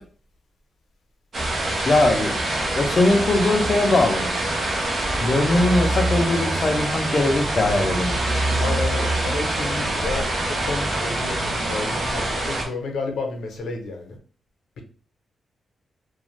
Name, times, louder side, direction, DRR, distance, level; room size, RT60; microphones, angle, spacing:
sound 1, 1.3-12.7, right 1 dB, 35° right, 0.6 m, -25 dB
voice 1, 1.9-2.5 2.8-4.3 5.2-8.2, left 2 dB, 35° left, 0.5 m, -20 dB
voice 2, 8.6-14.2, left 3 dB, 85° left, 0.6 m, -31 dB
2.5 x 2.2 x 3.0 m
wide cardioid pair, 165°, 0 cm